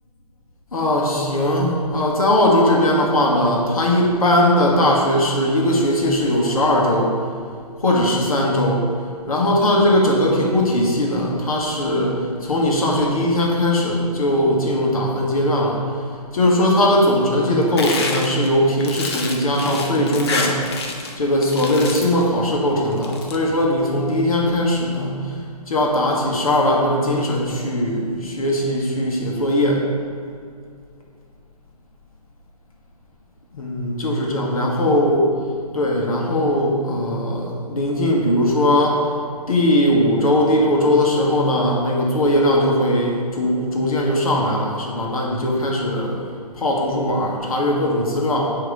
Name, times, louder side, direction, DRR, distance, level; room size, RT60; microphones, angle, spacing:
voice 1, 0.7-7.2 7.8-8.9 9.3-15.9 16.3-20.6 21.2-25.4 25.7-29.8 33.5-35.2 35.7-39.1 39.5-48.6, left 1 dB, 60° left, -1 dB, 1.3 m, -19 dB
sound 1, 17.8-21.2 21.4-22.2 22.9-23.4, left 3 dB, 40° left, 0.7 m, -27 dB
7.6 x 2.9 x 4.9 m, 2.1 s
figure-of-eight pair, 140°, 20 cm